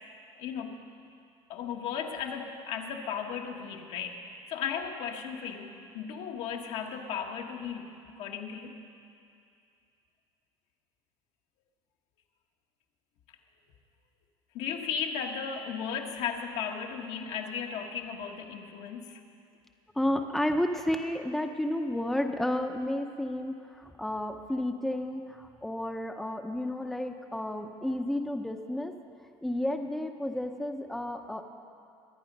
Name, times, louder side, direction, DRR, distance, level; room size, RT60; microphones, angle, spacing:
voice 1, 0.4-0.8 1.5-7.9 8.2-8.7 14.5-19.2, left 7 dB, 70° left, 2 dB, 1.5 m, -35 dB
voice 2, 20.0-28.9 29.4-31.4, left 1 dB, ahead, 4 dB, 0.8 m, -31 dB
23.5 x 8.8 x 5.4 m, 2.4 s
supercardioid pair, 110°, 12 cm